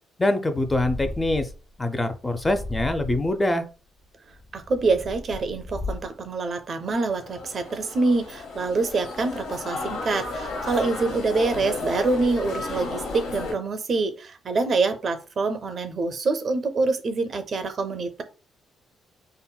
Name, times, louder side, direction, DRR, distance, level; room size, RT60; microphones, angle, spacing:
voice 1, 0.2-1.5 1.8-3.6, left 1 dB, 15° left, 8 dB, 0.4 m, -24 dB
Purr, 0.6-1.7 2.4-3.4 4.2-6.3, left 2 dB, 40° left, 1.1 m, -35 dB
voice 2, 4.5-18.2, right 3 dB, 50° right, 9 dB, 0.4 m, -25 dB
sound 1, 6.9-13.5, left 3 dB, 90° left, 0.8 m, -33 dB
3.7 x 2.0 x 2.2 m, 0.34 s
cardioid pair, 90°, 0 cm